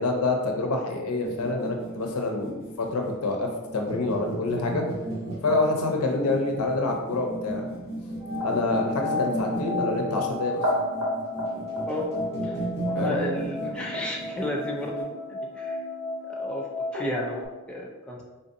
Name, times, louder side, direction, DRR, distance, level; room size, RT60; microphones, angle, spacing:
voice 1, 0.0-4.8 5.4-7.6 8.4-10.6 12.9-13.2, left 2 dB, 80° left, 2 dB, 0.6 m, -27 dB
sound 1, 1.2-15.0, right 2 dB, 30° right, 1.1 m, -36 dB
sound 2, 8.2-17.4, left 2 dB, 90° right, 1.2 m, -32 dB
voice 2, 12.8-15.8 16.3-16.7 16.9-18.2, left 1 dB, 5° left, -2 dB, 0.4 m, -32 dB
3.8 x 2.6 x 2.6 m, 1.1 s
head